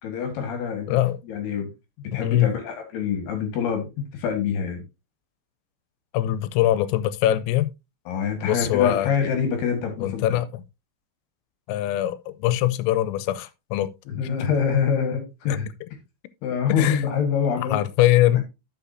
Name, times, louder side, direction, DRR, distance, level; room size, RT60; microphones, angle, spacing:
voice 1, 0.0-0.9 1.3-1.7 2.1-4.8 8.1-10.4 14.1-15.7 16.4-17.8, left 7 dB, 60° left, 3.2 m, -25 dB
voice 2, 2.1-2.5 6.1-7.7 8.4-9.1 10.0-10.6 11.7-13.9 15.5-15.6 16.7-17.0 17.7-18.5, left 14 dB, 85° left, 3.4 m, -22 dB
12.0 x 7.2 x 2.7 m
omnidirectional pair, 5.9 m